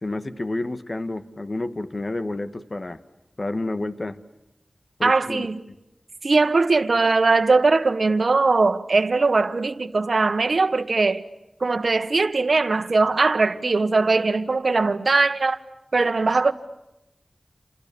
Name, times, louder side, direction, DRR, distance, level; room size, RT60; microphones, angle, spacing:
voice 1, 0.0-3.0 3.4-4.2 5.0-5.5, left 2 dB, 45° left, 1.7 m, -30 dB
voice 2, 5.0-5.6 6.2-11.2 11.6-15.6 15.9-16.5, right 3 dB, 70° right, 1.4 m, -20 dB
29.0 x 29.0 x 7.0 m
wide cardioid pair, 55°, 0 cm